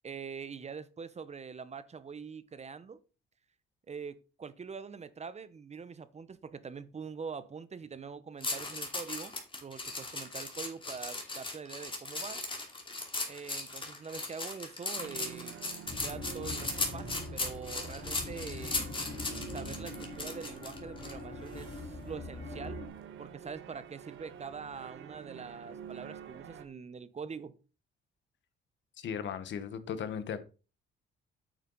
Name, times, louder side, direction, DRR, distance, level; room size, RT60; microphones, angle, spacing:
voice 1, 0.0-3.0 3.9-9.3 9.6-12.4 13.3-15.6 16.0-18.8 19.5-22.8 23.2-27.5, right 5 dB, 35° right, 15 dB, 0.8 m, -44 dB
sound 1, 8.4-21.1 21.6-21.8, left 3 dB, 25° left, 2.8 m, -37 dB
sound 2, 15.0-26.7, right 9 dB, 80° right, 1.1 m, -48 dB
sound 3, 15.9-22.9, left 3 dB, 45° left, 2.3 m, -44 dB
voice 2, 29.0-30.4, left 7 dB, 65° left, 12 dB, 1.2 m, -37 dB
8.8 x 6.7 x 3.9 m, 0.34 s
cardioid pair, 90°, 20 cm